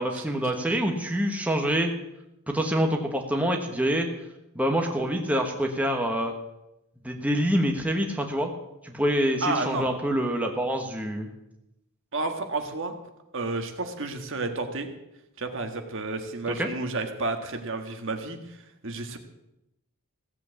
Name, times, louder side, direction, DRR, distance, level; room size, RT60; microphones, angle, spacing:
voice 1, 0.0-1.9 2.5-4.1 4.5-6.3 7.0-8.5 8.8-11.3 16.6-16.7, equal, 5° right, 2 dB, 1.3 m, -26 dB
voice 2, 9.4-9.9 12.1-12.9 13.3-14.9 15.4-18.6 18.8-19.2, right 3 dB, 55° right, 5 dB, 1.7 m, -31 dB
16.0 x 8.0 x 8.2 m, 0.89 s
head